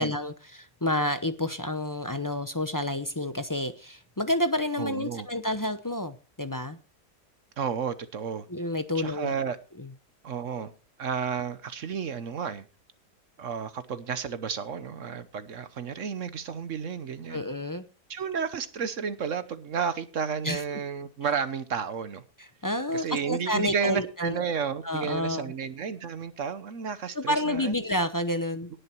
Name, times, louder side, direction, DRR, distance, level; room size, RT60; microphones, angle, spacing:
voice 1, 0.0-6.8 8.5-9.4 9.8-9.9 17.3-17.9 20.4-20.6 22.4-24.3 24.8-25.5 27.1-28.7, left 1 dB, 25° left, 9 dB, 0.4 m, -29 dB
voice 2, 4.8-5.3 7.6-8.5 8.9-9.6 10.2-10.7 11.0-12.7 13.4-17.4 18.1-22.2 22.9-27.8, right 6 dB, 55° right, 13 dB, 1.2 m, -32 dB
18.0 x 6.8 x 4.5 m, 0.33 s
omnidirectional pair, 1.7 m